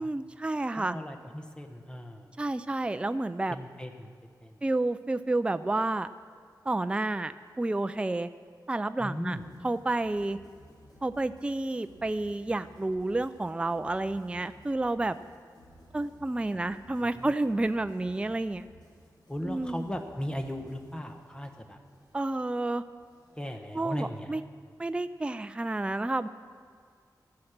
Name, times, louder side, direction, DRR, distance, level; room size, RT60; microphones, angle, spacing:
voice 1, 0.0-1.0 2.4-3.6 4.6-6.1 6.7-8.3 8.7-9.4 9.6-10.4 11.0-15.2 15.9-18.6 19.4-19.8 22.1-22.8 23.7-24.4 24.8-26.3, right 2 dB, 15° right, 11 dB, 0.4 m, -30 dB
voice 2, 0.7-2.3 3.5-4.1 4.4-4.6 9.0-9.5 16.5-16.7 17.0-17.3 19.3-21.8 23.4-24.4, equal, 10° left, 5 dB, 1.2 m, -37 dB
sound 1, 9.2-24.2, equal, 70° left, 4.4 m, -57 dB
14.0 x 10.5 x 6.5 m, 2.1 s
wide cardioid pair, 100°, 7 cm